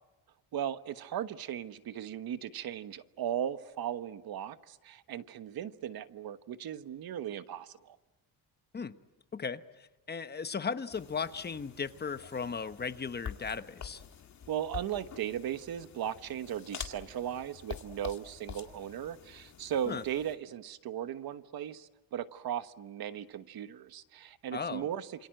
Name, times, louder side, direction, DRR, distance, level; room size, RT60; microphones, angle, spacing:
voice 1, 0.5-8.0 14.5-25.3, right 10 dB, 65° right, 1.3 m, -37 dB
voice 2, 9.3-14.0 19.9-20.0 24.5-24.9, left 5 dB, 25° left, 1.0 m, -36 dB
sound 1, 10.9-20.4, left 8 dB, 45° left, 2.2 m, -47 dB
28.0 x 27.5 x 7.8 m
cardioid pair, 160°, 39 cm